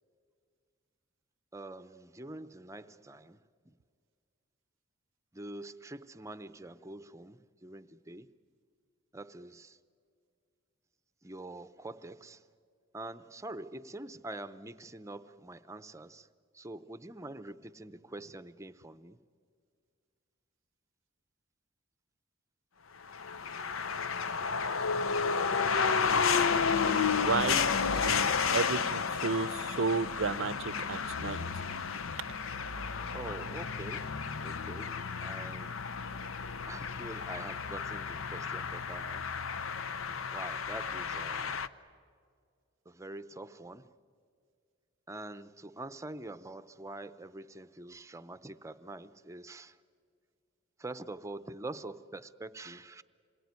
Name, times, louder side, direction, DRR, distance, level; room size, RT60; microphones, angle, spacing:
voice 1, 1.5-3.8 5.3-8.3 9.1-9.8 11.2-12.5 12.9-16.3 16.5-19.2 33.1-35.8 36.7-39.3 40.3-41.6 42.9-43.9 45.1-49.8 50.8-53.0, right 2 dB, 15° right, 0.7 m, -45 dB
sound 1, 23.1-41.7, left 5 dB, 80° left, 0.8 m, -32 dB
voice 2, 25.8-26.1 26.5-26.6 27.2-31.4, right 4 dB, 65° right, 0.6 m, -33 dB
27.5 x 22.0 x 9.6 m
head